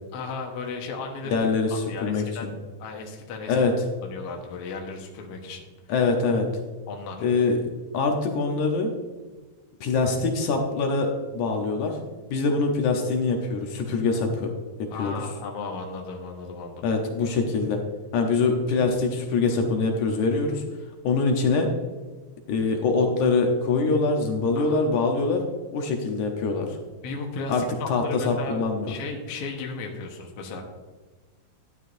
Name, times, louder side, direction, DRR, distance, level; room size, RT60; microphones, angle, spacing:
voice 1, 0.1-1.4 1.7-2.5 2.8-3.6 4.0-5.7 6.9-7.2 14.9-16.9 24.6-24.8 27.0-28.6 28.9-30.6, left 4 dB, 60° left, 1 dB, 2.0 m, -35 dB
voice 2, 1.3-2.5 3.5-3.7 5.9-6.5 7.2-7.6 7.9-8.9 9.8-12.0 12.3-14.5 15.0-15.2 16.8-17.8 18.1-20.6 21.0-21.7 22.5-25.4 25.7-26.8 27.5-29.0, left 4 dB, 75° left, 2 dB, 2.4 m, -24 dB
12.5 x 10.0 x 2.6 m, 1.3 s
omnidirectional pair, 3.6 m